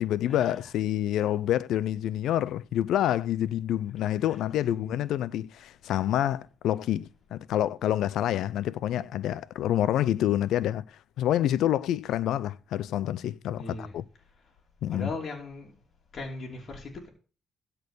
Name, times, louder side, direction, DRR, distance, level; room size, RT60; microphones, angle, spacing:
voice 1, 0.0-10.8 11.2-14.0 14.8-15.1, left 12 dB, 80° left, 0.4 m, -27 dB
voice 2, 13.6-13.9 14.9-15.8 16.1-17.1, left 2 dB, 50° left, 2.8 m, -38 dB
12.5 x 4.5 x 6.6 m
cardioid pair, 90°, 0 cm